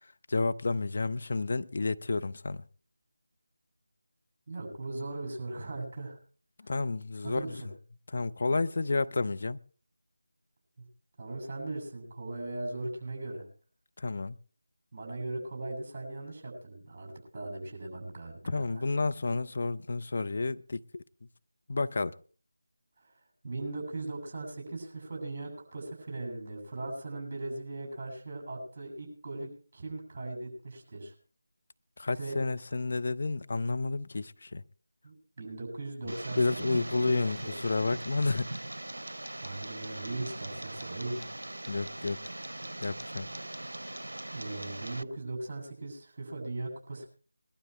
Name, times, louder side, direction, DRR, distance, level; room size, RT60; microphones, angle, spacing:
voice 1, 0.0-2.6 6.6-7.6 8.1-9.6 14.0-14.4 18.4-21.0 21.7-22.1 32.0-34.6 36.0-38.5 41.7-42.2 42.8-43.3, left 3 dB, 45° left, 0.7 m, -31 dB
voice 2, 4.5-6.2 6.6-6.7 7.2-7.5 11.2-13.4 14.9-18.8 23.0-23.1 23.4-29.5 29.7-31.1 32.2-32.4 35.0-37.5 39.4-41.3 44.3-47.1, right 2 dB, 30° right, 7.6 m, -39 dB
Tick, 36.1-45.0, right 1 dB, 75° right, 0.6 m, -40 dB
21.5 x 12.5 x 3.3 m
figure-of-eight pair, 165°, 0 cm